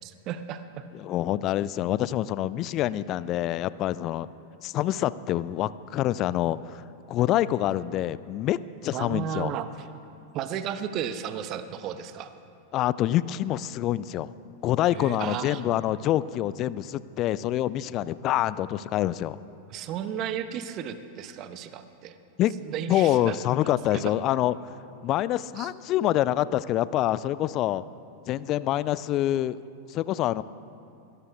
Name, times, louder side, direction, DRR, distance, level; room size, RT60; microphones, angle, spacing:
voice 1, 0.0-0.9 8.9-9.7 10.3-12.3 14.9-15.6 19.7-22.2 22.6-23.3 23.9-24.1 25.6-25.7, right 9 dB, 35° right, 11 dB, 0.8 m, -34 dB
voice 2, 0.9-4.3 4.6-6.8 7.1-9.6 12.7-14.3 14.6-19.4 22.4-22.5 22.9-24.6 25.0-27.8 28.3-29.6 29.9-30.4, left 13 dB, 35° left, 18 dB, 0.4 m, -26 dB
24.0 x 18.0 x 2.4 m, 2.6 s
figure-of-eight pair, 90°, 0 cm